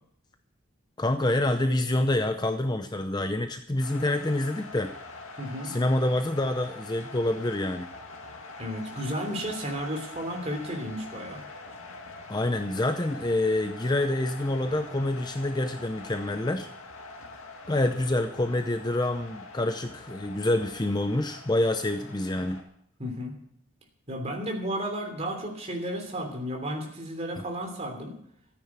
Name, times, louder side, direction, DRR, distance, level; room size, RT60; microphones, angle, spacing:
voice 1, 1.0-4.9 5.6-7.9 12.3-16.7 17.7-22.6, left 1 dB, 20° left, 7 dB, 0.6 m, -27 dB
sound 1, 3.8-22.6, left 3 dB, 75° left, 2.1 m, -44 dB
voice 2, 5.4-5.7 8.6-11.4 23.0-23.3 24.1-28.1, equal, 30° right, 2 dB, 3.1 m, -33 dB
14.0 x 9.5 x 7.4 m, 0.70 s
head